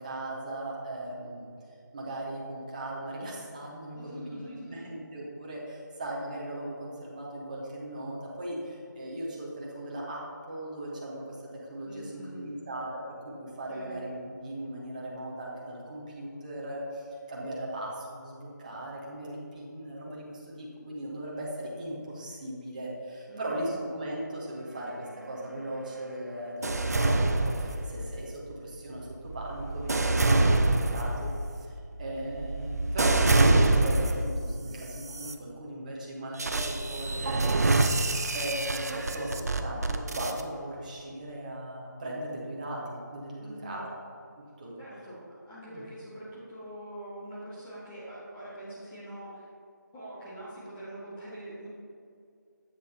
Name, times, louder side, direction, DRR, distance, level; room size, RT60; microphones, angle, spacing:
voice 1, 0.0-1.5 1.9-11.4 11.7-31.3 32.0-43.9 44.6-44.7, right 1 dB, 25° right, -4 dB, 1.0 m, -38 dB
voice 2, 3.9-4.9 11.8-12.6 13.7-14.0 23.3-23.8 43.4-44.0 44.8-45.2 45.4-49.5 49.9-51.7, right 1 dB, 5° left, -11 dB, 0.5 m, -44 dB
sound 1, 26.6-28.2 28.9-34.4 35.0-35.3 36.4-40.4, right 2 dB, 55° right, 0.5 m, -26 dB
7.8 x 6.9 x 2.8 m, 2.4 s
figure-of-eight pair, 165°, 10 cm